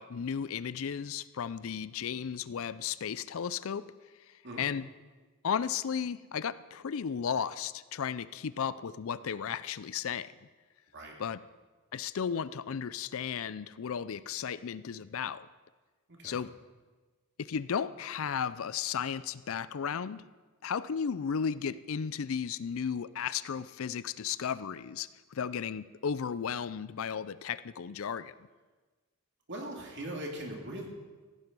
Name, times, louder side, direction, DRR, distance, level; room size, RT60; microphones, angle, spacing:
voice 1, 0.0-3.8 4.6-4.9 5.4-10.3 11.2-11.4 11.9-15.5 16.2-16.5 17.4-20.2 20.6-28.3, left 7 dB, 65° left, 16 dB, 0.4 m, -34 dB
voice 2, 16.1-16.4 29.5-30.9, right 1 dB, 50° right, 0 dB, 2.7 m, -40 dB
16.0 x 11.0 x 5.3 m, 1.3 s
head